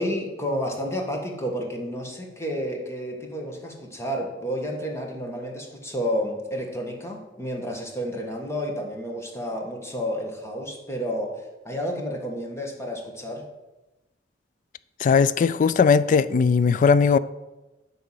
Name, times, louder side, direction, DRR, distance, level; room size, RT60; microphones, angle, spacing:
voice 1, 0.0-13.5, equal, 15° left, 1.5 m, -30 dB
voice 2, 15.0-17.2, left 5 dB, 45° left, 0.3 m, -18 dB
10.0 x 3.8 x 7.3 m
head